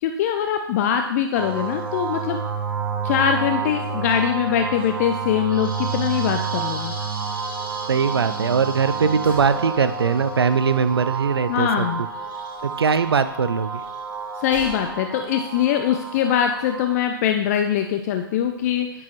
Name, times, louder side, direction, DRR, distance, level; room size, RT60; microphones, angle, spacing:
voice 1, 0.0-2.4 3.0-6.9 11.5-12.0 14.4-19.0, left 9 dB, 40° left, 6 dB, 0.6 m, -22 dB
sound 1, 1.3-16.9, right 5 dB, 60° right, 2.0 m, -30 dB
sound 2, 3.1-5.8 6.1-6.3 6.6-6.7 8.3-12.3 12.5-15.0 15.3-15.4, equal, 15° left, 3.4 m, -45 dB
voice 2, 7.9-12.1 12.6-13.8, right 6 dB, 85° right, 13 dB, 0.4 m, -21 dB
10.0 x 6.2 x 3.2 m, 0.85 s
hypercardioid pair, 125°, 13 cm